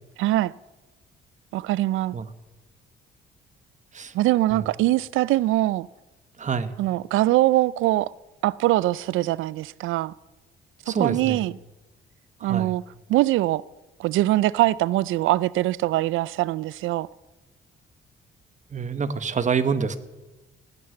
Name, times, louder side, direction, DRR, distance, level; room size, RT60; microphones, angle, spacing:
voice 1, 0.2-0.5 1.5-2.2 4.1-5.9 6.8-8.1 8.4-10.1 10.9-11.5 12.4-12.8 13.1-13.6 14.0-17.1, right 16 dB, 85° right, 0.5 m, -22 dB
voice 2, 6.4-6.7 10.9-11.4 12.4-12.7 18.7-20.0, right 6 dB, 40° right, 1.3 m, -26 dB
17.5 x 9.8 x 8.0 m
cardioid pair, 90°, 20 cm